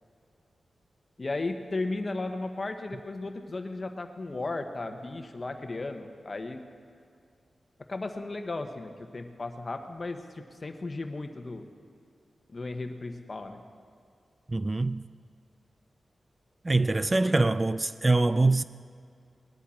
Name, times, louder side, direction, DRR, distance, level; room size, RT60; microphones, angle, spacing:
voice 1, 1.2-6.6 7.9-11.7 12.5-13.6 17.2-17.6, left 2 dB, 40° left, 1.1 m, -35 dB
voice 2, 14.5-15.0 16.6-18.6, right 2 dB, 30° right, 0.3 m, -24 dB
19.5 x 11.0 x 4.3 m
cardioid pair, 70°, 0 cm